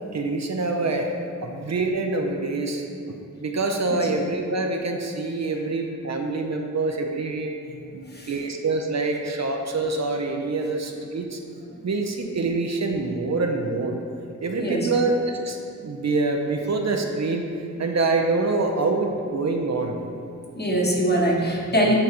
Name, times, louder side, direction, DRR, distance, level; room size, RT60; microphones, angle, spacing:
voice 1, 0.1-1.1 1.4-7.5 7.9-11.4 11.8-14.0 14.4-15.6 15.8-17.4 17.8-20.0, right 3 dB, 60° right, 3 dB, 0.5 m, -25 dB
voice 2, 8.0-8.3 14.6-14.9 20.5-21.9, right 1 dB, 35° left, -1 dB, 0.9 m, -23 dB
8.6 x 3.9 x 2.9 m, 2.5 s
wide cardioid pair, 75°, 31 cm